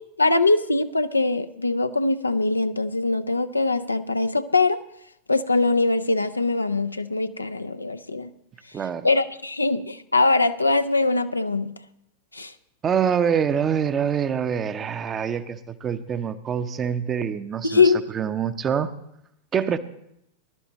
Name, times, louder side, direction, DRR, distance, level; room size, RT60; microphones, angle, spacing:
voice 1, 0.2-4.8 5.3-8.3 9.0-11.7 12.3-12.5 17.6-18.0, left 3 dB, 80° left, 10 dB, 0.5 m, -22 dB
voice 2, 8.7-9.1 12.8-19.0 19.5-19.8, right 7 dB, 25° right, 11 dB, 0.7 m, -25 dB
20.0 x 11.5 x 3.0 m, 0.76 s
figure-of-eight pair, 90°, 0 cm